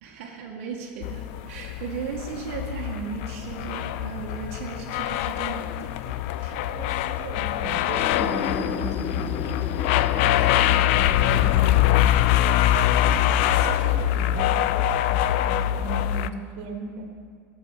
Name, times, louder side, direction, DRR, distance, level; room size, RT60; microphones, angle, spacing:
voice 1, 0.0-6.6, right 6 dB, 80° right, -3 dB, 1.8 m, -36 dB
sound 1, 1.0-16.3, left 12 dB, 65° left, 0.5 m, -23 dB
voice 2, 6.6-12.0 13.0-13.2 13.5-14.7 15.1-17.1, right 3 dB, 65° right, 3 dB, 2.1 m, -37 dB
sound 2, 7.9-15.4, left 5 dB, 25° left, 0.7 m, -37 dB
14.0 x 7.4 x 9.0 m, 2.1 s
supercardioid pair, 155°, 7 cm